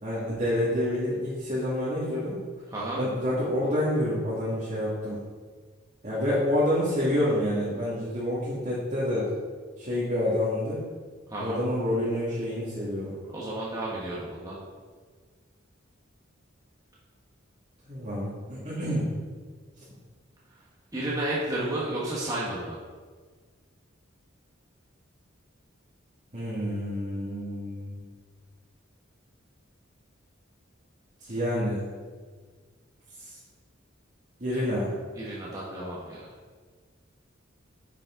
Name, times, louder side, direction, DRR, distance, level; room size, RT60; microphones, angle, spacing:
voice 1, 0.0-2.4 3.0-5.2 6.0-9.3 9.8-10.8 11.4-13.2 17.9-19.1 26.3-28.0 31.2-31.8 33.2-33.4 34.4-34.9, left 1 dB, 40° right, -9 dB, 2.2 m, -28 dB
voice 2, 11.3-11.6 13.3-14.6 20.9-22.8 35.2-36.2, right 1 dB, 20° right, -7 dB, 1.5 m, -32 dB
9.7 x 7.4 x 3.9 m, 1.5 s
head